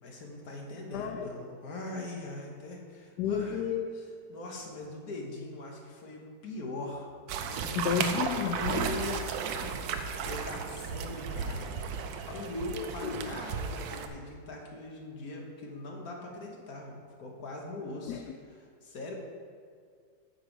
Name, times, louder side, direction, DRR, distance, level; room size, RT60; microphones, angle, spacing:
voice 1, 0.0-3.7 4.3-7.1 7.5-8.0 8.4-9.2 9.6-19.1, left 2 dB, 55° left, 0 dB, 1.8 m, -41 dB
voice 2, 0.9-1.3 3.2-3.9 7.7-8.9 12.3-12.5 12.7-13.3 18.1-18.2, left 8 dB, 75° left, 4 dB, 1.1 m, -32 dB
sound 1, 7.3-14.1, right 6 dB, 90° right, 1.4 m, -34 dB
9.7 x 7.2 x 4.6 m, 2.1 s
omnidirectional pair, 1.9 m